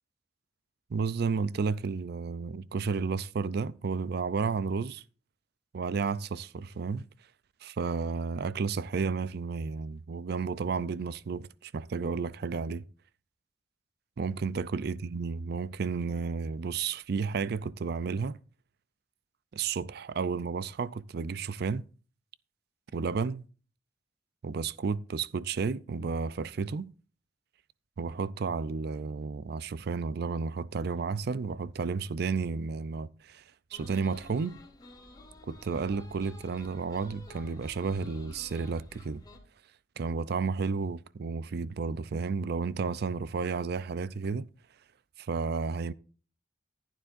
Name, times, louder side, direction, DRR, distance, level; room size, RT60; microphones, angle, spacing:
voice 1, 0.9-5.0 5.7-7.0 7.6-12.8 14.2-18.4 19.5-21.8 22.9-23.4 24.4-26.9 28.0-33.4 33.7-34.6 35.5-39.2 40.0-44.5 45.2-45.9, right 5 dB, 60° right, 0.4 m, -32 dB
sound 1, 33.7-39.4, left 1 dB, 25° left, 3.0 m, -51 dB
15.0 x 9.4 x 2.5 m
head